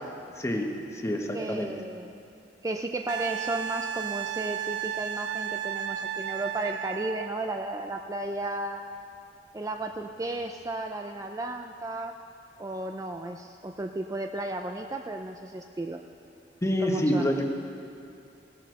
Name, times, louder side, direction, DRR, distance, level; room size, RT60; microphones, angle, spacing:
voice 1, 0.4-1.7 16.6-17.5, equal, 15° left, 2 dB, 1.1 m, -27 dB
voice 2, 1.3-2.1 2.6-8.8 9.5-12.2 12.6-16.0 16.8-17.3, right 2 dB, 20° right, 4 dB, 0.4 m, -34 dB
Wind instrument woodwind instrument, 3.1-7.3 10.0-10.1, right 9 dB, 90° right, 0.4 m, -33 dB
17.5 x 7.7 x 6.4 m, 2.5 s
head